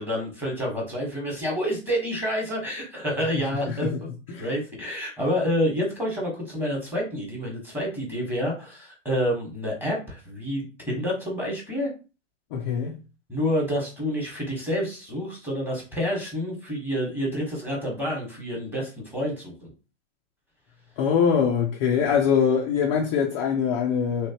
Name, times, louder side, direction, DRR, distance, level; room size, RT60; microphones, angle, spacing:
voice 1, 0.0-4.1 4.4-11.9 13.3-19.7 22.1-22.2, equal, 5° right, 1.2 m, -28 dB
voice 2, 12.5-13.0 21.0-24.3, left 7 dB, 25° left, 0.4 m, -23 dB
3.2 x 3.0 x 2.9 m
hypercardioid pair, 145°, 38 cm